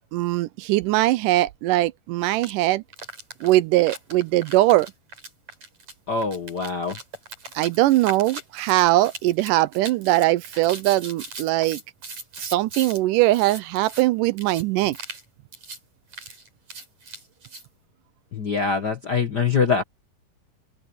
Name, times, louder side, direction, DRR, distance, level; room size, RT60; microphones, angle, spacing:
voice 1, 0.1-2.8 3.4-4.9 7.6-11.8 12.4-15.0, right 17 dB, 80° right, 2.1 m, -21 dB
sound 1, 2.3-2.5 2.9-13.0 13.3-14.0 14.4-14.6 14.9-15.2 15.5-15.8 16.1-17.7, right 3 dB, 50° right, 9.1 m, -39 dB
voice 2, 6.1-7.0 18.3-19.8, left 5 dB, 55° left, 1.2 m, -24 dB
open air
omnidirectional pair, 3.9 m